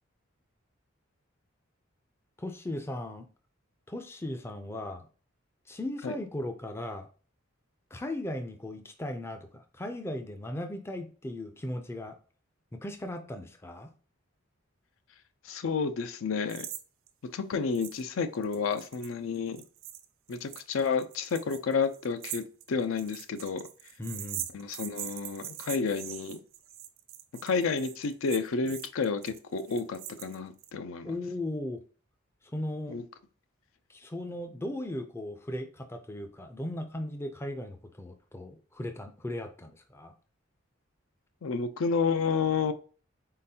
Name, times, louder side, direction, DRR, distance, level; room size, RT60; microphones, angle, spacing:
voice 1, 2.4-3.3 3.9-5.1 5.7-7.1 7.9-12.2 12.7-13.9 24.0-24.5 31.0-31.8 32.5-33.0 33.9-40.1, left 1 dB, 10° left, 6 dB, 0.4 m, -37 dB
voice 2, 15.4-16.7 17.3-19.6 20.3-23.6 24.5-26.4 27.4-31.1 32.9-33.0 41.4-42.7, left 5 dB, 75° left, 11 dB, 0.4 m, -30 dB
sound 1, 16.5-16.8 17.1-17.2 17.7-18.0 18.3-30.7, right 12 dB, 75° right, 0.5 m, -42 dB
4.1 x 3.8 x 2.7 m, 0.39 s
head